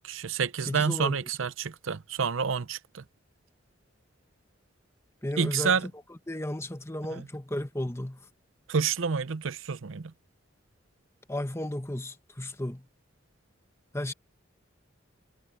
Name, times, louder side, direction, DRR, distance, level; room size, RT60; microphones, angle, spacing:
voice 1, 0.0-3.0 5.4-5.9 7.1-7.3 8.7-10.1, right 6 dB, 75° right, 0.7 m, -29 dB
voice 2, 0.7-1.2 5.2-5.8 6.3-8.2 11.3-12.9 13.9-14.1, left 1 dB, 15° left, 1.4 m, -34 dB
head